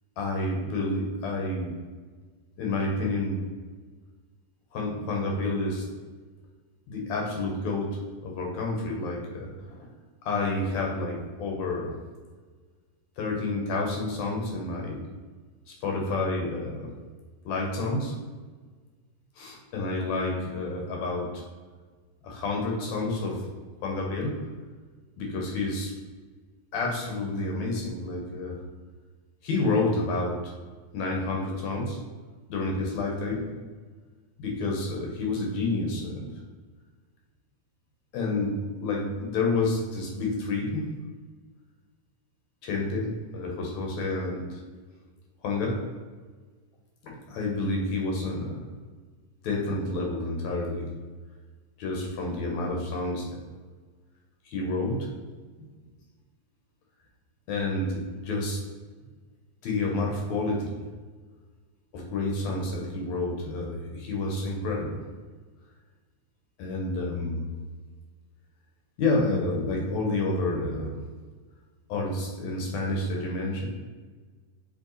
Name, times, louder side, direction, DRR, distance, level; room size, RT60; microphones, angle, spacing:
voice 1, 0.2-1.8 2.6-3.4 4.7-5.9 6.9-8.0 8.2-9.9 10.2-11.9 13.2-15.0 15.7-16.9 17.5-18.1 19.4-21.4 22.2-23.4 23.8-24.5 25.2-25.9 26.7-28.6 29.4-30.5 30.9-32.0 32.5-33.5 34.4-36.4 38.1-40.9 42.6-44.6 45.4-45.8 47.0-48.7 49.4-50.9 51.8-53.3 54.5-55.1 57.5-58.6 59.6-60.8 61.9-65.0 66.6-67.5 69.0-71.0 71.9-73.7, left 2 dB, 65° left, -1 dB, 2.0 m, -29 dB
6.9 x 3.5 x 3.9 m, 1.4 s
omnidirectional pair, 3.9 m